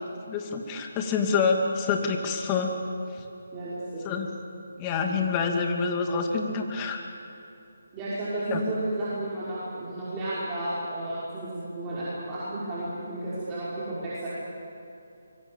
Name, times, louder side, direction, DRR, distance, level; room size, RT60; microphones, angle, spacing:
voice 1, 0.3-2.7 3.1-3.2 4.0-4.3 4.8-7.0 8.5-8.6, left 5 dB, 20° left, 3 dB, 2.6 m, -27 dB
voice 2, 3.5-4.0 7.9-14.3, right 1 dB, 20° right, -10 dB, 5.8 m, -32 dB
25.0 x 23.5 x 7.4 m, 2.8 s
figure-of-eight pair, 150°, 0 cm